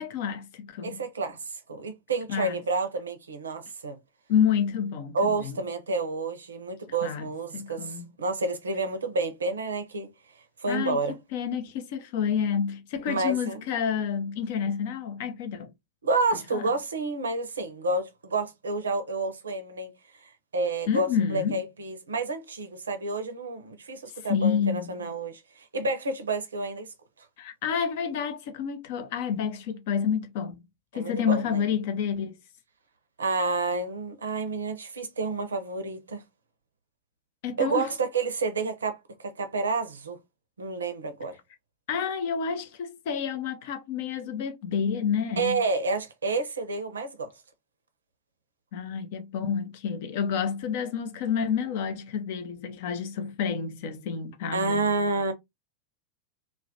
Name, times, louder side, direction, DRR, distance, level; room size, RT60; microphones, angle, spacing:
voice 1, 0.0-1.0 2.3-2.6 4.3-5.6 7.0-7.3 7.5-8.1 10.7-15.7 16.5-16.7 20.9-21.6 24.3-25.0 27.4-30.6 30.9-32.4 37.4-37.9 41.9-45.6 48.7-54.9, left 7 dB, 50° left, 0.4 m, -29 dB
voice 2, 0.8-4.0 5.1-10.1 10.6-11.1 13.1-13.6 16.0-19.9 20.2-26.9 30.9-31.6 33.2-36.2 37.6-40.2 40.6-41.3 45.4-47.3 54.5-55.3, right 3 dB, 70° right, 0.5 m, -29 dB
2.3 x 2.1 x 2.6 m
figure-of-eight pair, 90°, 0 cm